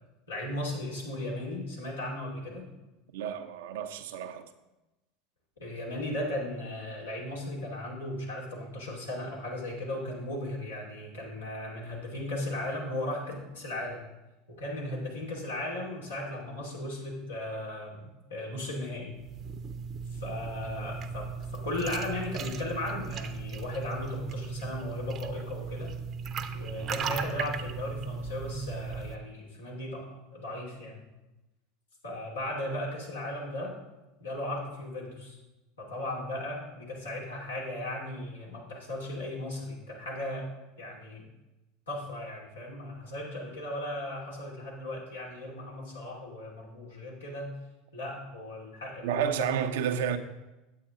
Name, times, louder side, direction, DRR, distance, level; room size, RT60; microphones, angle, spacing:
voice 1, 0.3-2.7 5.6-14.0 14.5-19.1 20.1-25.9 26.5-31.1 32.0-33.8 34.2-35.4 35.8-40.5 40.8-41.2 41.9-47.6 47.9-49.5, left 1 dB, 90° left, 2.7 m, -36 dB
voice 2, 3.1-4.5 49.0-50.2, right 8 dB, 70° right, 0.7 m, -30 dB
sound 1, 19.1-29.2, right 6 dB, 40° right, 0.7 m, -37 dB
8.5 x 8.5 x 3.8 m
hypercardioid pair, 80°, 0 cm